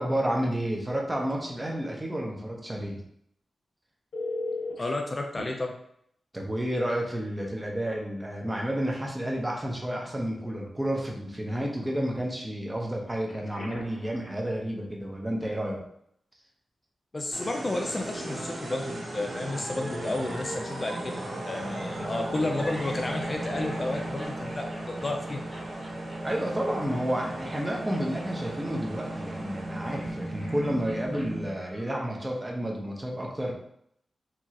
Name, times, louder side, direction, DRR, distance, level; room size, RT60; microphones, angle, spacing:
voice 1, 0.0-3.0 6.3-15.8 26.2-33.6, equal, 15° right, -1 dB, 1.0 m, -31 dB
Telephone, 4.1-4.8 5.4-5.5 7.2-7.4 7.8-7.9 13.2-14.1 21.2-21.4, left 2 dB, 70° left, 1.5 m, -36 dB
voice 2, 4.8-5.8 17.1-25.4, left 2 dB, 35° left, 2 dB, 0.5 m, -32 dB
sound 1, 17.3-31.6, right 1 dB, 65° right, 1.2 m, -36 dB
sound 2, 22.5-32.4, equal, ahead, 1.2 m, -48 dB
4.7 x 2.8 x 2.9 m, 0.70 s
cardioid pair, 80°, 0 cm